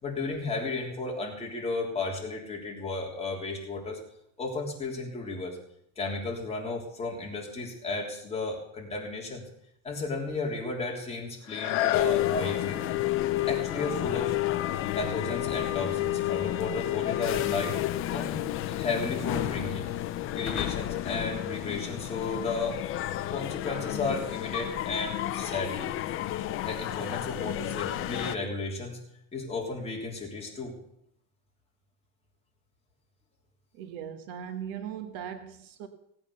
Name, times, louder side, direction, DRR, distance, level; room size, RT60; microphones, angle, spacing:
voice 1, 0.0-4.0 4.4-5.6 6.0-9.4 9.8-12.9 13.5-14.4 14.9-17.8 18.1-18.4 18.6-19.9 20.3-22.8 23.3-25.9 26.6-29.0 29.3-30.7, left 3 dB, 15° left, -1 dB, 3.4 m, -33 dB
sound 1, 11.4-17.1 17.6-17.7, left 13 dB, 70° left, 1.2 m, -36 dB
sound 2, 11.9-28.4, left 14 dB, 30° left, 0.6 m, -31 dB
voice 2, 33.7-35.9, right 9 dB, 55° right, 8 dB, 1.5 m, -39 dB
17.5 x 8.8 x 6.9 m, 0.73 s
supercardioid pair, 150°, 41 cm